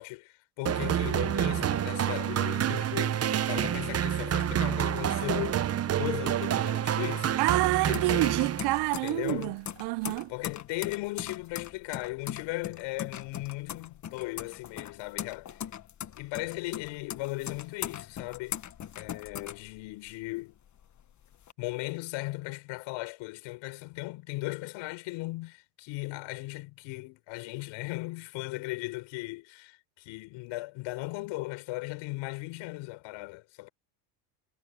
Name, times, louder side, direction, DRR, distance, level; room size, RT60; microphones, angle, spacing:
voice 1, 0.0-5.6 6.0-7.4 7.8-8.3 9.0-9.5 10.3-15.6 16.2-18.6 19.0-20.6 21.6-33.7, left 21 dB, 65° left, 6.6 m, -37 dB
sound 1, 0.7-9.0, right 10 dB, 30° right, 1.0 m, -28 dB
sound 2, 6.5-20.3 20.7-21.5, left 10 dB, 35° left, 1.6 m, -40 dB
voice 2, 7.4-10.3, right 21 dB, 55° right, 0.7 m, -28 dB
supercardioid pair, 100°, 48 cm